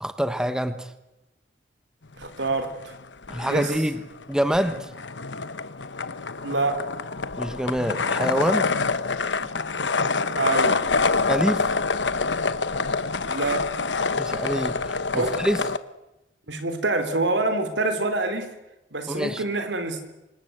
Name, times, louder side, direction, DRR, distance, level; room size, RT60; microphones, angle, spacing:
voice 1, 0.0-0.9 3.3-4.0 4.3-4.9 7.4-8.7 11.3-11.7 14.2-15.6 19.1-19.4, equal, 5° right, 10 dB, 1.3 m, -26 dB
sound 1, 2.2-3.0 3.2-15.8, left 4 dB, 80° left, 1.2 m, -26 dB
voice 2, 2.2-2.9 3.4-3.7 6.4-6.8 10.4-10.8 13.3-13.7 15.1-15.4 16.5-18.5 18.9-20.1, right 2 dB, 85° right, 8 dB, 4.1 m, -26 dB
28.0 x 26.0 x 8.1 m, 0.97 s
head